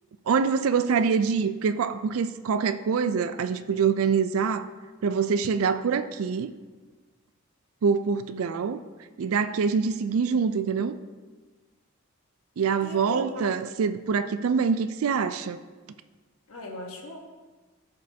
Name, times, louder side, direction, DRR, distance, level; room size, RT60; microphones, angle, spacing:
voice 1, 0.3-4.7 5.0-6.5 7.8-8.8 9.2-11.0 12.6-15.6, right 6 dB, 85° right, 11 dB, 0.4 m, -25 dB
voice 2, 12.8-13.6 16.5-17.2, left 1 dB, 85° left, 0 dB, 1.2 m, -38 dB
13.0 x 5.3 x 2.7 m, 1.3 s
head